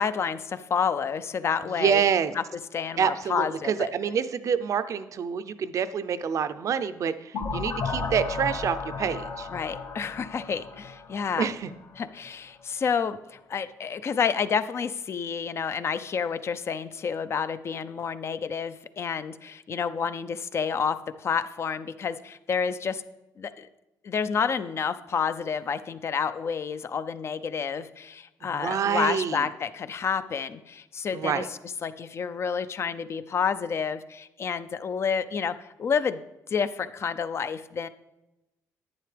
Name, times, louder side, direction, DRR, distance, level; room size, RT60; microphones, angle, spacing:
voice 1, 0.0-2.0 2.3-2.4 2.7-3.9 9.5-11.5 12.0-23.0 23.4-23.7 24.0-36.2 36.5-37.9, left 6 dB, 40° left, 13 dB, 0.5 m, -29 dB
voice 2, 1.8-2.3 3.0-9.5 11.4-11.7 28.5-29.5 31.1-31.5, right 7 dB, 55° right, 12 dB, 0.5 m, -27 dB
sound 1, 7.3-12.0, left 4 dB, 70° left, 1.6 m, -34 dB
11.0 x 9.4 x 3.4 m, 0.97 s
cardioid pair, 115°, 7 cm